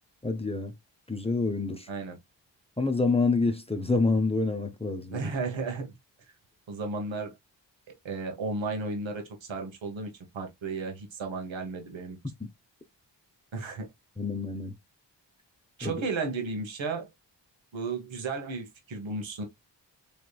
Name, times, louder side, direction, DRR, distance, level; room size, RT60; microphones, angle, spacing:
voice 1, 0.2-0.7 1.1-1.9 2.8-5.2 14.2-14.7 15.8-15.9, left 3 dB, 15° left, 0.8 m, -27 dB
voice 2, 5.1-5.9 6.7-7.3 8.0-12.2 13.5-13.8 15.8-17.1 17.7-19.4, right 3 dB, 80° right, 1.2 m, -34 dB
3.5 x 3.2 x 2.3 m
cardioid pair, 40°, 45 cm